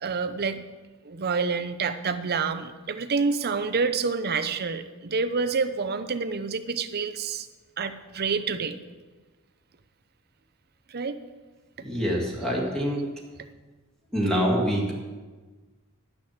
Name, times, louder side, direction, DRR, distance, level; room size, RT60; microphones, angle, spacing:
voice 1, 0.0-0.6 1.0-7.5 7.8-8.8 10.9-11.2, right 5 dB, 45° right, 9 dB, 0.7 m, -28 dB
voice 2, 11.8-13.0 14.1-14.9, equal, 5° left, -3 dB, 2.2 m, -25 dB
11.5 x 6.4 x 7.6 m, 1.3 s
head